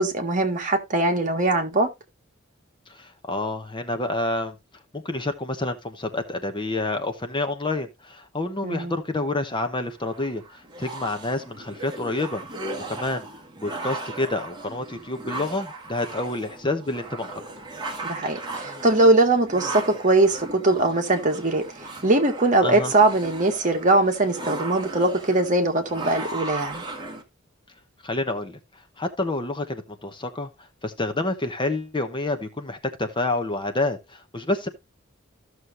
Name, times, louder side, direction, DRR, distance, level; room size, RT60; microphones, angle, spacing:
voice 1, 0.0-1.9 8.6-8.9 18.0-26.8, right 2 dB, 40° right, 1.6 m, -21 dB
voice 2, 2.9-4.6 4.9-12.4 12.8-13.3 13.6-17.4 22.6-22.9 28.0-28.6 29.0-30.5 30.8-34.7, left 2 dB, 25° left, 0.9 m, -28 dB
sound 1, 10.0-27.2, right 2 dB, 20° right, 1.6 m, -37 dB
14.5 x 6.4 x 2.6 m
head